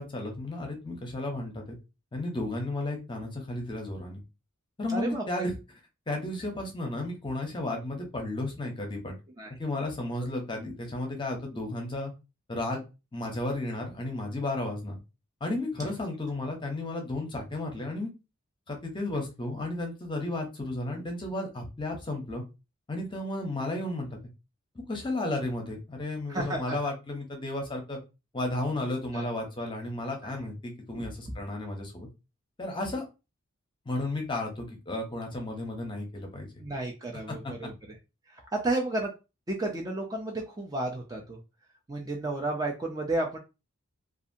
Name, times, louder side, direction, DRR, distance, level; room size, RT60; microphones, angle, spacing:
voice 1, 0.0-1.8 2.1-4.2 4.8-5.5 6.1-9.1 9.6-12.1 12.5-12.8 13.1-15.0 15.4-18.1 18.7-22.4 22.9-24.2 24.9-28.0 28.3-32.1 32.6-33.0 33.9-36.5 37.4-37.5, left 2 dB, 20° left, 2 dB, 0.7 m, -33 dB
voice 2, 4.9-5.5 9.4-9.5 15.8-15.9 26.3-26.8 29.1-29.3 30.2-30.4 30.9-31.0 36.6-37.7 38.5-39.1 39.5-41.4 41.9-43.4, right 2 dB, 20° right, 0 dB, 0.4 m, -32 dB
2.7 x 2.4 x 2.6 m, 0.28 s
head